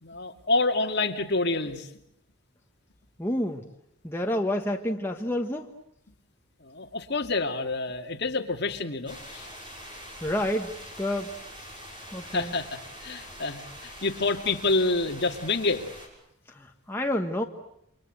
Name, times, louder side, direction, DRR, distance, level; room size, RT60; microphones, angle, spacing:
voice 1, 0.0-1.9 6.6-9.5 12.3-15.9, left 3 dB, 50° left, 4 dB, 2.3 m, -28 dB
voice 2, 3.2-3.6 4.0-5.7 10.2-10.7 11.0-11.3 12.1-12.5 16.5-17.4, left 1 dB, 10° left, 2 dB, 1.3 m, -29 dB
sound 1, 9.1-16.1, equal, 20° right, 6.4 m, -44 dB
29.0 x 25.0 x 7.9 m, 0.76 s
head